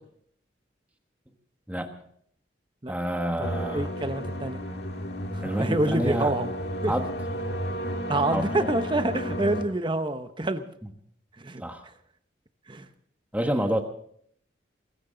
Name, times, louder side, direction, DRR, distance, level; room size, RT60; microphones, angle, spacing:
voice 1, 2.9-3.9 5.4-6.3 6.9-7.1 8.3-8.7 10.8-10.9 11.6-11.8 13.3-13.8, equal, 10° right, 5 dB, 1.4 m, -28 dB
sound 1, 3.4-9.6, equal, 60° left, 2.0 m, -32 dB
voice 2, 3.4-4.6 5.3-6.5 6.8-6.9 8.1-10.6 11.4-11.6 12.7-12.8 13.5-13.6, right 2 dB, 25° right, 9 dB, 0.9 m, -27 dB
21.0 x 17.0 x 3.9 m, 0.63 s
head